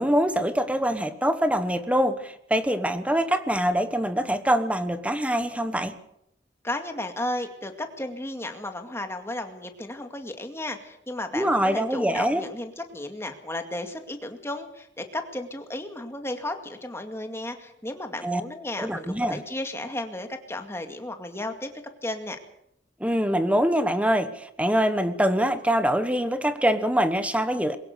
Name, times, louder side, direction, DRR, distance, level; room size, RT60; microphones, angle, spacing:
voice 1, 0.0-6.0 11.3-12.5 18.2-18.4 18.8-19.4 23.0-27.8, equal, 5° right, 11 dB, 1.1 m, -24 dB
voice 2, 6.6-21.7 22.0-22.4, left 1 dB, 15° left, 5 dB, 2.2 m, -34 dB
22.0 x 17.5 x 6.7 m, 0.77 s
head